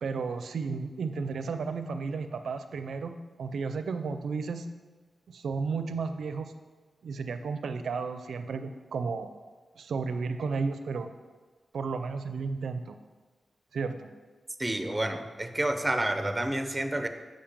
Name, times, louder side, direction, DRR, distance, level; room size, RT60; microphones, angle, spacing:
voice 1, 0.0-3.1 3.4-4.7 5.3-6.5 7.0-9.3 9.8-11.1 11.7-13.0 13.7-14.1, right 4 dB, 90° right, 9 dB, 0.4 m, -33 dB
voice 2, 14.6-17.1, right 1 dB, 15° right, 8 dB, 0.7 m, -29 dB
7.1 x 5.2 x 5.1 m, 1.4 s
cardioid pair, 65°, 0 cm